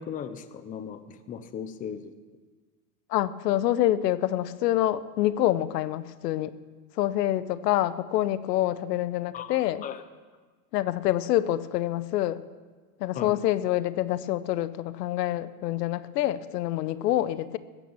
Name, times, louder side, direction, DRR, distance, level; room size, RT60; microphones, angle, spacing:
voice 1, 0.0-2.1 9.3-10.0 13.1-13.4, left 8 dB, 15° left, 11 dB, 0.6 m, -37 dB
voice 2, 3.1-6.5 7.0-9.8 10.7-12.4 13.0-17.6, left 13 dB, 80° left, 16 dB, 0.9 m, -26 dB
15.0 x 9.2 x 7.0 m, 1.4 s
supercardioid pair, 135°, 48 cm